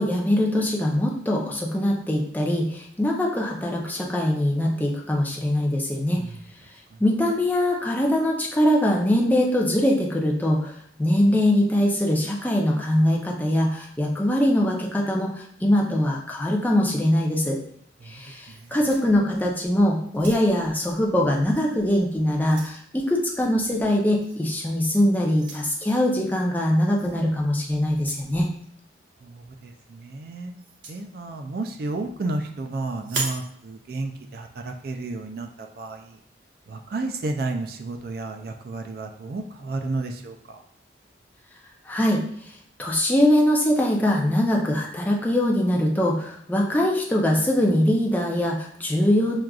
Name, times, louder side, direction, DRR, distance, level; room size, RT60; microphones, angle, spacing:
voice 1, 0.0-6.2 7.0-17.6 18.0-28.5 41.9-42.5 42.8-49.4, left 1 dB, 10° left, -2 dB, 0.5 m, -22 dB
sound 1, 18.5-19.6 20.1-20.7 21.5-21.7 22.1-22.8 24.2-24.4 25.3-25.7 27.0-27.2 27.9-28.3 30.6-31.0 33.0-33.5, right 4 dB, 75° right, 0.8 m, -36 dB
voice 2, 29.2-30.5 30.9-36.2 36.7-40.6, right 2 dB, 55° right, 5 dB, 0.3 m, -32 dB
6.1 x 2.4 x 2.3 m, 0.65 s
head